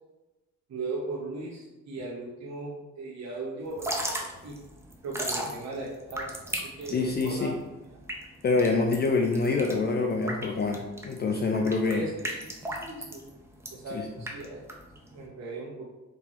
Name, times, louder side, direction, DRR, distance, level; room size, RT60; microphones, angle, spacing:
voice 1, 0.7-4.1 4.4-4.5 5.0-7.5 11.9-13.2 13.7-14.6 15.1-15.9, right 2 dB, 60° right, -4 dB, 0.9 m, -38 dB
Drip / Trickle dribble, 3.7-15.3, right 1 dB, 10° right, 0.6 m, -37 dB
voice 2, 6.9-7.5 8.4-12.1 13.9-14.1, left 3 dB, 35° left, 1 dB, 0.4 m, -26 dB
3.7 x 2.8 x 3.0 m, 1.1 s
cardioid pair, 90°, 30 cm